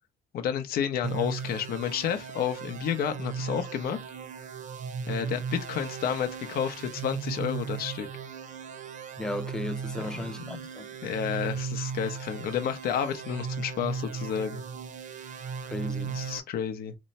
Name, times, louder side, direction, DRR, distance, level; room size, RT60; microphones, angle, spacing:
voice 1, 0.3-4.0 5.1-8.1 10.2-10.7 11.0-14.6 16.0-17.0, left 8 dB, 65° left, 0.7 m, -31 dB
sound 1, 1.0-16.4, right 6 dB, 50° right, 0.6 m, -37 dB
voice 2, 9.2-10.9 15.7-16.1, left 1 dB, 5° left, 0.3 m, -35 dB
3.0 x 2.1 x 4.1 m
cardioid pair, 110°, 17 cm